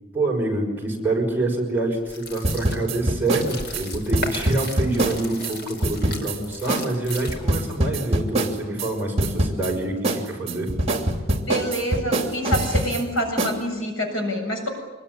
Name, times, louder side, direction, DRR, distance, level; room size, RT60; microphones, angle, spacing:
voice 1, 0.1-10.7, right 2 dB, 10° right, -1 dB, 6.2 m, -26 dB
sound 1, 2.0-7.7, left 2 dB, 55° left, 5.1 m, -36 dB
sound 2, 2.4-5.5 5.8-6.4 6.7-6.8 7.1-8.9 9.2-9.7 10.0-13.0 13.4-13.6, right 1 dB, 30° right, 3.0 m, -24 dB
voice 2, 11.4-14.7, equal, 80° left, 3 dB, 7.5 m, -26 dB
25.5 x 22.0 x 9.9 m, 1.2 s
head